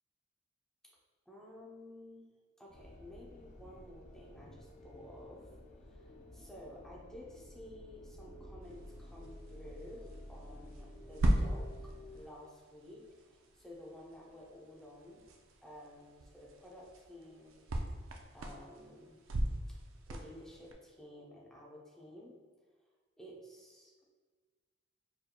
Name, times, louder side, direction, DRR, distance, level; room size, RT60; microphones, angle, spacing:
voice 1, 1.3-2.3 2.6-5.5 5.8-11.7 12.1-15.2 15.6-17.7 18.3-19.2 19.7-19.8 20.1-22.4 23.2-24.0, left 1 dB, 5° left, -4 dB, 0.8 m, -53 dB
sound 1, 2.7-12.2, equal, 35° left, 0.5 m, -52 dB
sound 2, 8.6-20.7, right 1 dB, 85° right, 0.5 m, -39 dB
4.8 x 4.8 x 2.3 m, 1.5 s
head